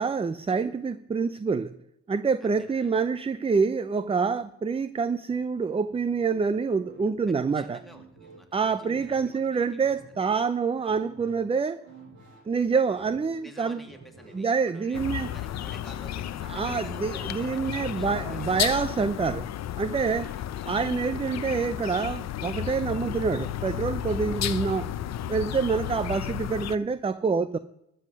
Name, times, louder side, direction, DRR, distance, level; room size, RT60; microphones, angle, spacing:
voice 1, 0.0-1.7 2.1-7.8 8.5-11.8 12.5-13.8 14.3-15.3 16.5-19.5 19.8-20.3 20.7-24.9 25.3-27.6, right 5 dB, 20° right, 14 dB, 0.5 m, -26 dB
voice 2, 2.4-3.0 7.3-10.3 13.4-18.6 20.2-20.3, equal, ahead, 3 dB, 2.4 m, -51 dB
sound 1, 5.3-15.8, right 3 dB, 65° right, 6.1 m, -52 dB
sound 2, 14.9-26.8, left 11 dB, 60° left, 0.7 m, -33 dB
13.0 x 7.9 x 6.2 m, 0.82 s
cardioid pair, 90°, 30 cm